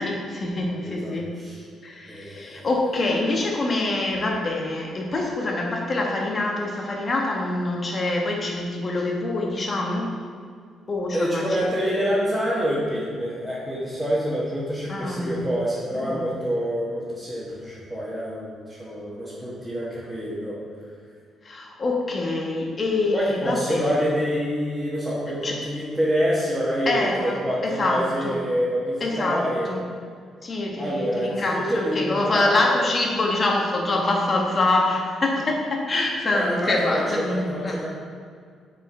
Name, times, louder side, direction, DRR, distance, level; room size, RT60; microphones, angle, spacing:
voice 1, 0.0-1.3 1.8-10.2 10.9-11.7 14.9-15.4 15.9-16.2 21.4-24.1 25.4-25.6 26.9-28.4 29.0-29.8 30.4-37.8, left 2 dB, 35° left, 0 dB, 1.3 m, -25 dB
voice 2, 0.7-1.6 2.1-2.7 11.1-20.6 23.1-29.7 30.8-32.8 36.3-37.9, equal, 5° right, -9 dB, 1.6 m, -27 dB
7.2 x 4.5 x 4.3 m, 2.1 s
cardioid pair, 90°, 0 cm